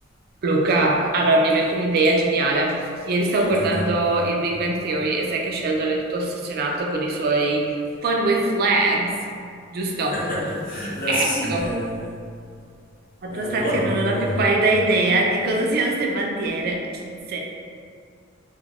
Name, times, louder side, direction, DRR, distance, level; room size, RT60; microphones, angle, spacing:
voice 1, 0.4-2.8 3.0-9.2 9.7-10.2 11.1-11.7 13.2-17.4, right 2 dB, 50° right, 0 dB, 0.3 m, -22 dB
voice 2, 3.4-3.9 10.1-12.1 13.3-14.5, equal, 45° left, -8 dB, 0.9 m, -28 dB
2.3 x 2.1 x 3.4 m, 2.3 s
head